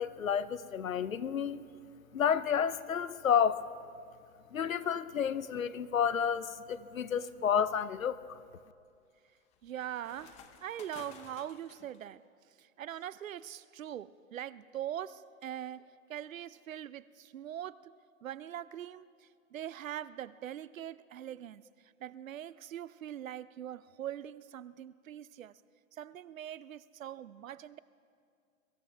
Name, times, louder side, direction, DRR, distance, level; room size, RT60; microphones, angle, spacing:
voice 1, 0.0-1.7 2.1-3.7 4.5-8.3, left 8 dB, 85° left, 16 dB, 0.7 m, -30 dB
sound 1, 6.7-6.8 7.4-12.0, left 7 dB, 15° left, 0.6 m, -56 dB
voice 2, 9.6-12.2 12.6-17.9 18.2-25.6 25.9-27.8, right 11 dB, 75° right, 19 dB, 0.6 m, -42 dB
23.0 x 15.0 x 3.4 m, 2.2 s
hypercardioid pair, 125°, 40 cm